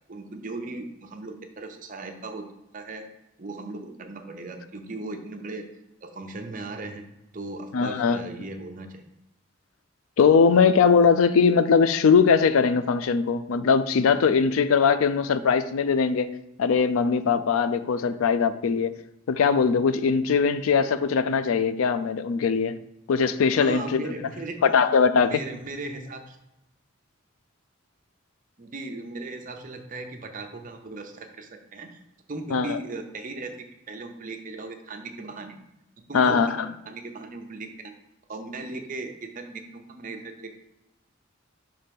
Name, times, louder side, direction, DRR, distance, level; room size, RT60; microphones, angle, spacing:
voice 1, 0.1-2.5 2.7-3.1 3.4-5.7 6.0-7.0 7.3-9.1 23.6-24.7 25.2-26.4 28.6-32.0 32.3-35.6 36.0-37.9 38.3-40.5, right 2 dB, 40° right, 0.7 m, -37 dB
voice 2, 7.7-8.2 10.2-16.3 16.6-19.0 19.3-22.8 23.1-24.1 24.6-25.3 32.5-32.8 36.1-36.7, left 5 dB, 90° left, 0.4 m, -21 dB
5.7 x 3.2 x 5.2 m
head